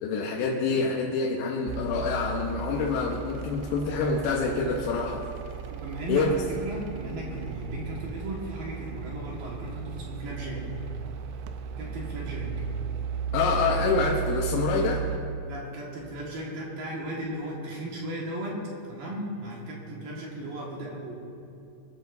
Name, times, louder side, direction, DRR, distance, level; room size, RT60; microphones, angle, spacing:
voice 1, 0.0-5.2 6.1-6.4 13.3-15.0, left 4 dB, 75° left, -2 dB, 3.0 m, -26 dB
sound 1, 1.7-15.2, right 7 dB, 80° right, 2.8 m, -35 dB
voice 2, 5.7-10.7 11.8-12.7 15.4-21.1, right 1 dB, 60° right, -3 dB, 2.9 m, -36 dB
22.5 x 13.0 x 2.6 m, 2.5 s
omnidirectional pair, 5.4 m